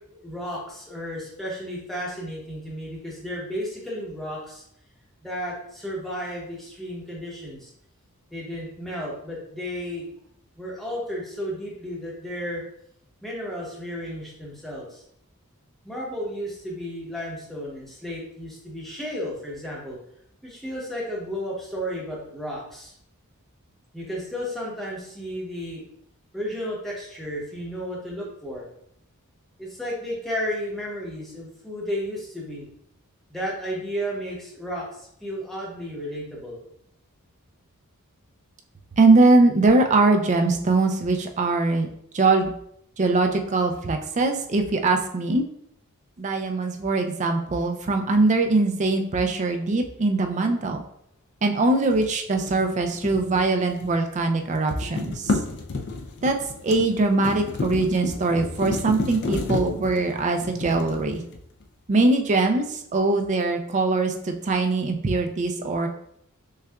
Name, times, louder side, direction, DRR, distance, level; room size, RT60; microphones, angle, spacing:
voice 1, 0.1-4.6 5.2-7.7 8.3-10.1 10.6-12.6 13.2-15.0 15.8-20.0 20.4-22.9 23.9-25.9 26.3-28.7 29.6-32.7 33.3-36.6, equal, ahead, -5 dB, 0.9 m, -33 dB
voice 2, 39.0-41.9 42.1-42.5 43.0-45.4 46.2-50.8 51.4-55.4 56.2-56.4 56.6-61.2 61.9-65.9, right 3 dB, 30° right, 4 dB, 0.4 m, -22 dB
sound 1, 51.8-54.1 54.3-61.6, left 3 dB, 50° left, 0.4 m, -32 dB
6.3 x 2.3 x 2.3 m, 0.71 s
head